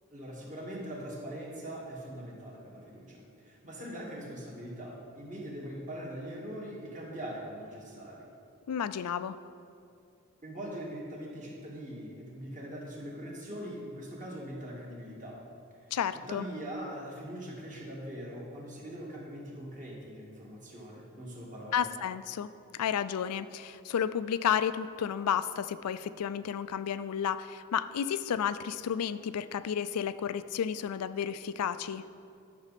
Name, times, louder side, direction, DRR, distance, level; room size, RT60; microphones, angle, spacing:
voice 1, 0.1-8.2 10.4-15.4 15.8-15.9 16.3-21.8, equal, 35° right, -4 dB, 1.9 m, -42 dB
voice 2, 8.7-9.4 15.9-16.4 21.7-22.5 22.7-32.0, left 8 dB, 90° left, 14 dB, 0.4 m, -32 dB
12.0 x 6.1 x 4.2 m, 2.5 s
head